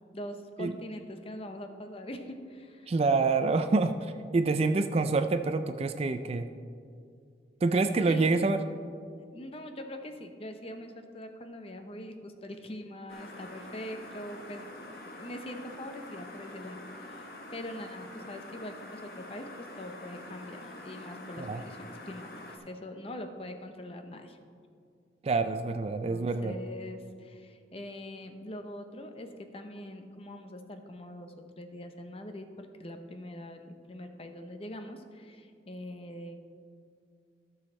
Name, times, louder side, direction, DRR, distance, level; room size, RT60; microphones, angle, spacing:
voice 1, 0.0-2.9 8.1-8.4 9.3-24.4 26.1-36.5, left 1 dB, 30° left, 6 dB, 0.7 m, -43 dB
voice 2, 2.9-6.5 7.6-8.6 21.4-21.6 25.2-26.6, right 3 dB, 35° right, 9 dB, 0.3 m, -27 dB
sound 1, 13.1-22.6, left 1 dB, 55° left, 1.2 m, -46 dB
14.0 x 6.4 x 4.3 m, 2.3 s
head